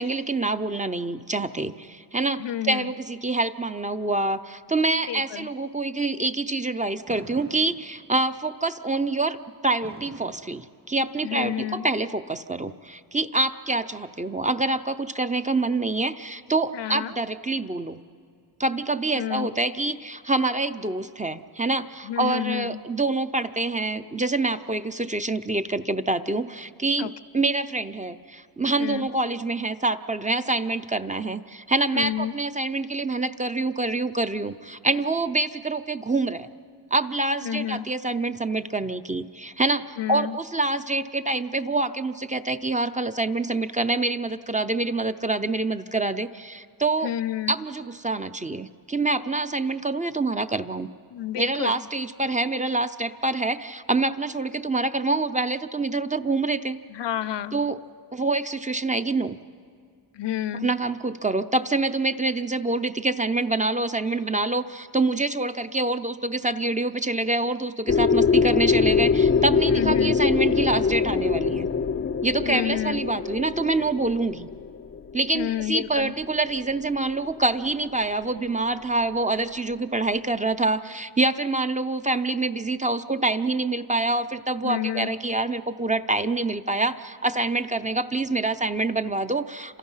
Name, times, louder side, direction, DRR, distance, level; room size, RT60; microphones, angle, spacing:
voice 1, 0.0-9.4 9.6-18.0 18.6-36.5 36.9-47.1 47.5-50.9 51.3-56.8 57.5-57.8 58.1-59.4 60.5-71.7 72.2-74.5 75.1-89.8, right 2 dB, 15° right, 10 dB, 0.6 m, -26 dB
voice 2, 2.4-2.9 5.1-5.5 11.2-11.9 16.7-17.1 19.1-19.5 22.0-22.8 27.0-27.1 28.8-29.1 31.9-32.3 37.4-37.9 40.0-40.4 47.0-47.6 51.1-51.7 56.9-57.6 60.1-60.7 69.7-70.2 72.4-73.0 75.3-76.1 84.6-85.1, left 12 dB, 70° left, 17 dB, 0.7 m, -30 dB
Fireworks, 7.1-8.4 9.8-11.4, right 2 dB, 40° right, 2.4 m, -45 dB
sound 1, 67.9-75.7, left 5 dB, 30° left, 0.5 m, -23 dB
29.0 x 27.0 x 5.6 m, 2.2 s
wide cardioid pair, 120°, 44 cm